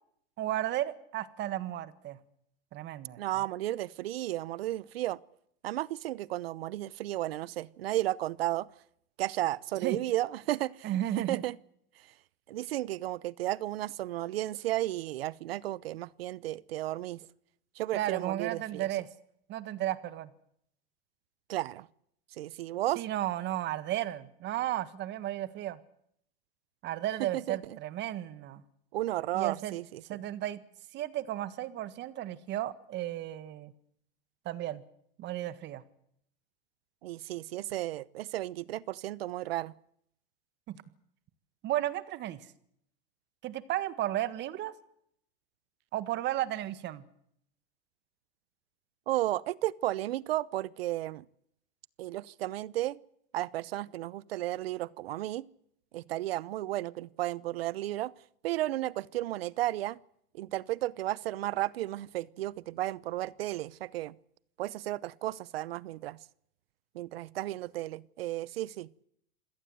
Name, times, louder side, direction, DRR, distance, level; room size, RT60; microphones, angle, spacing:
voice 1, 0.4-2.2 2.7-3.2 9.8-10.0 10.8-11.4 17.9-19.1 19.5-20.3 22.9-25.8 26.8-28.6 29.3-29.7 30.1-30.6 30.9-33.7 34.4-34.8 35.2-35.8 40.7-40.8 41.6-42.5 43.4-44.7 45.9-47.0, right 13 dB, 40° right, 1.7 m, -34 dB
voice 2, 3.2-5.2 5.6-8.7 9.2-10.9 11.2-11.5 12.5-17.2 17.8-18.9 21.5-21.9 22.4-23.0 27.2-27.8 28.9-30.2 37.0-39.7 49.1-51.2 52.0-53.0 53.3-55.4 55.9-58.1 58.4-60.0 60.3-64.1 64.6-66.2 66.9-68.9, right 15 dB, 85° right, 0.9 m, -33 dB
26.5 x 17.5 x 7.9 m
supercardioid pair, 130°, 29 cm